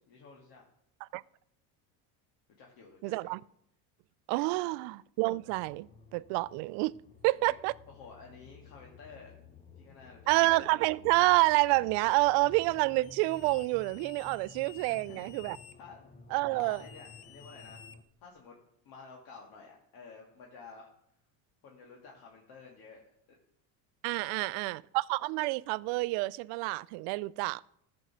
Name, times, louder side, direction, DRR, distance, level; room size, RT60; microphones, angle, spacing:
voice 1, 0.1-0.6 2.6-3.3 4.6-4.7 7.4-7.5 7.9-9.3 9.8-10.5 14.8-16.0 16.5-17.8 18.2-18.6 18.8-20.9 21.6-23.0 24.1-24.8, left 4 dB, 60° left, 2.1 m, -52 dB
voice 2, 3.0-3.4 4.3-6.9 7.2-7.7 10.3-15.6 16.3-16.8 24.0-27.6, right 21 dB, 70° right, 0.5 m, -28 dB
sound 1, 5.5-18.0, left 4 dB, 20° left, 0.8 m, -54 dB
sound 2, 13.0-15.7 16.6-18.4, left 10 dB, 75° left, 1.0 m, -54 dB
14.5 x 5.3 x 6.2 m
cardioid pair, 135°, 42 cm